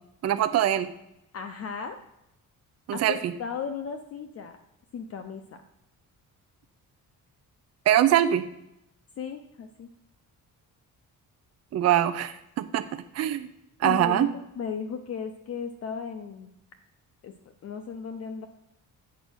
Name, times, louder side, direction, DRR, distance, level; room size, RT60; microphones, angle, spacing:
voice 1, 0.2-0.9 2.9-3.3 7.9-8.4 11.7-13.5 13.8-14.3, right 11 dB, 45° right, 11 dB, 0.5 m, -23 dB
voice 2, 1.3-2.0 2.9-4.6 4.9-5.6 9.2-9.9 13.8-16.5 17.2-17.3 17.6-18.5, left 6 dB, 45° left, 6 dB, 0.7 m, -35 dB
8.3 x 5.2 x 6.3 m, 0.82 s
cardioid pair, 170°, 34 cm